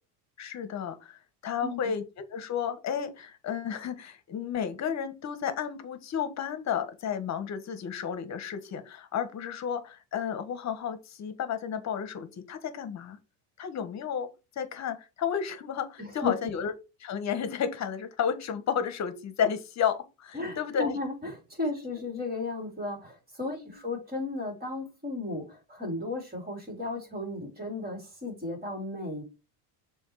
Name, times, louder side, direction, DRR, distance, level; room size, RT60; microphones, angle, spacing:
voice 1, 0.4-13.2 13.6-14.3 14.5-16.7 17.0-21.0 23.5-23.8, left 7 dB, 40° left, 1.4 m, -32 dB
voice 2, 1.6-1.9 16.0-16.3 20.3-29.2, left 2 dB, 20° right, 3.8 m, -34 dB
7.1 x 3.2 x 4.8 m
supercardioid pair, 120°, 43 cm